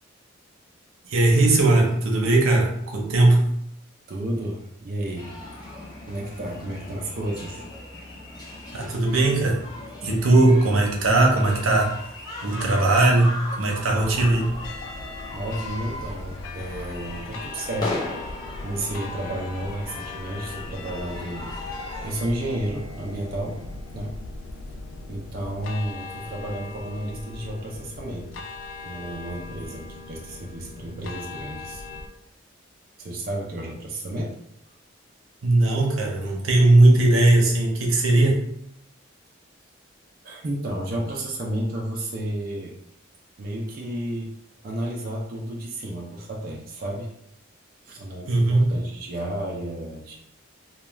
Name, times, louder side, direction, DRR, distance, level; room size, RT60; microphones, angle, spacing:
voice 1, 1.1-3.5 8.7-9.6 10.0-11.9 12.4-14.6 35.4-38.4 48.3-48.7, right 2 dB, 90° right, 0 dB, 0.7 m, -19 dB
voice 2, 4.1-5.3 5.8-7.6 15.3-18.1 18.6-21.5 21.8-23.6 23.9-24.1 25.1-28.4 28.8-31.8 33.0-34.4 40.2-42.7 43.4-44.3 44.6-47.1 47.8-50.1, right 1 dB, 45° right, -2 dB, 0.4 m, -32 dB
sound 1, 5.1-22.1, left 2 dB, 20° left, 0.5 m, -38 dB
sound 2, 13.9-32.1, left 3 dB, 75° left, 0.3 m, -39 dB
2.3 x 2.2 x 3.0 m, 0.74 s
head